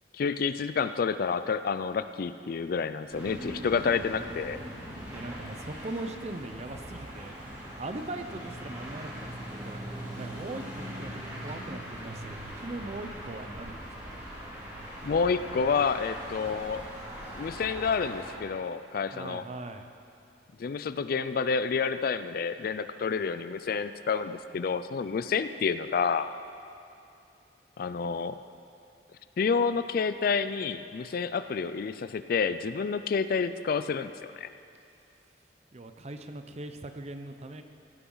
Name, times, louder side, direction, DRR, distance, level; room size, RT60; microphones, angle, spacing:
voice 1, 0.1-4.6 15.0-16.8 17.3-19.4 20.6-26.3 27.8-28.4 29.4-34.1 34.4-34.5, left 5 dB, 55° left, 12 dB, 0.4 m, -29 dB
sound 1, 3.1-18.4, equal, 20° right, 3.2 m, -41 dB
voice 2, 5.1-7.4 7.8-14.2 19.1-19.9 35.7-37.6, right 2 dB, 35° right, 7 dB, 0.7 m, -40 dB
17.0 x 10.0 x 3.9 m, 2.6 s
head